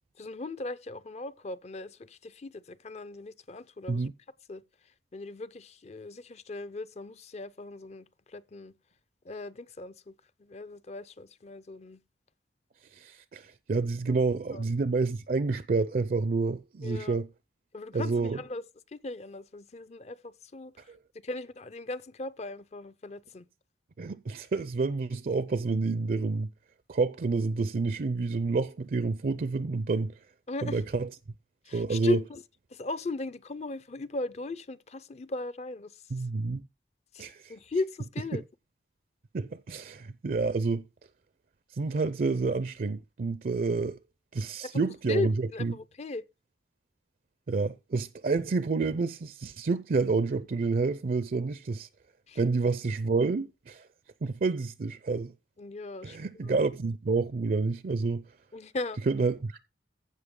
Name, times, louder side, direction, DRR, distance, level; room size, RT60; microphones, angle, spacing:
voice 1, 0.2-4.1 4.5-4.6 5.1-8.7 9.2-10.1 10.4-12.0 14.5-14.6 16.8-17.2 17.7-20.9 21.2-23.5 30.5-30.8 31.6-32.4 32.7-36.3 37.1-38.4 44.6-44.8 45.1-46.2 52.3-52.4 55.6-56.5 58.5-59.0, left 2 dB, 35° left, 0.5 m, -38 dB
voice 2, 12.9-17.3 17.9-18.4 20.9-21.0 24.0-26.5 26.9-30.2 30.6-31.1 31.7-32.2 36.1-36.7 37.2-37.5 38.3-38.4 39.3-40.8 41.7-44.0 44.3-45.3 45.6-45.7 47.5-51.9 52.4-53.9 54.2-55.3 56.0-58.2 59.1-59.6, right 4 dB, 50° right, 0.4 m, -29 dB
15.0 x 5.5 x 3.7 m
head